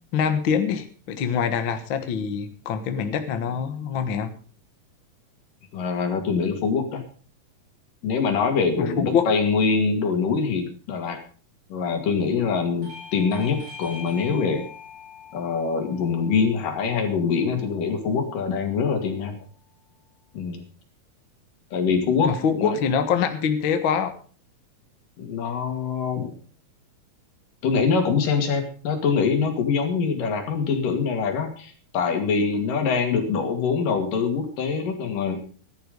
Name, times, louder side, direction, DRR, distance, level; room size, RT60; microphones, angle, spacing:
voice 1, 0.1-4.3 8.8-9.3 22.2-24.1, left 7 dB, 55° left, 8 dB, 1.4 m, -24 dB
voice 2, 5.7-7.0 8.0-11.2 11.7-14.6 15.3-19.4 20.3-20.6 21.7-22.8 25.2-26.3 27.6-35.4, left 5 dB, 70° left, 5 dB, 3.8 m, -24 dB
Bell / Doorbell, 12.8-18.0, left 6 dB, 80° right, 5.4 m, -43 dB
14.5 x 11.5 x 5.2 m, 0.41 s
omnidirectional pair, 4.0 m